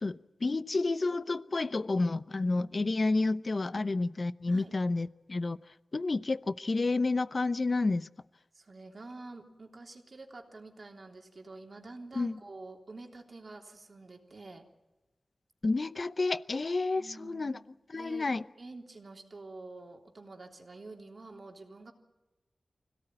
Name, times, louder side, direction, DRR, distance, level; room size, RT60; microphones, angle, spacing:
voice 1, 0.0-5.6 5.9-8.1 12.2-12.3 15.6-17.6 17.9-18.4, left 3 dB, 45° left, 15 dB, 0.7 m, -30 dB
voice 2, 8.5-14.7 17.0-17.6 17.9-18.3 18.6-21.9, right 3 dB, 45° right, 2 dB, 3.3 m, -48 dB
25.0 x 17.5 x 9.1 m, 1.1 s
wide cardioid pair, 90°, 0 cm